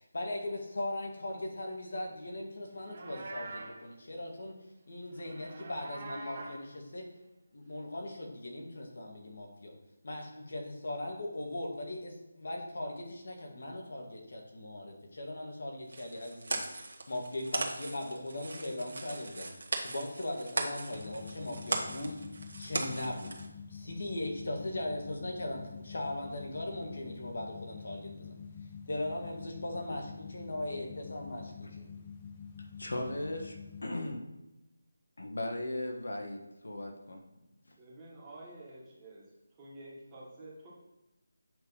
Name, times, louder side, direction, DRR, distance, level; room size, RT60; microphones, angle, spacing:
voice 1, 0.0-4.5 4.9-7.1 7.5-9.7 10.0-19.5 19.8-22.2 22.6-23.3 23.7-28.3 28.9-30.0 30.3-31.9, left 1 dB, 50° left, 1 dB, 1.7 m, -39 dB
Livestock farm animals working animals, 2.7-3.8 5.1-6.6, right 3 dB, 30° right, 1.0 m, -44 dB
sound 1, 15.9-23.5, right 2 dB, 55° right, 1.3 m, -38 dB
sound 2, 20.9-33.8, left 6 dB, 20° left, 0.4 m, -47 dB
voice 2, 32.6-34.2 35.2-37.2, left 1 dB, 80° left, 2 dB, 1.4 m, -37 dB
voice 3, 37.8-39.2 39.6-40.7, right 1 dB, 10° right, -7 dB, 1.4 m, -49 dB
7.8 x 3.4 x 5.6 m, 0.99 s
figure-of-eight pair, 175°, 0 cm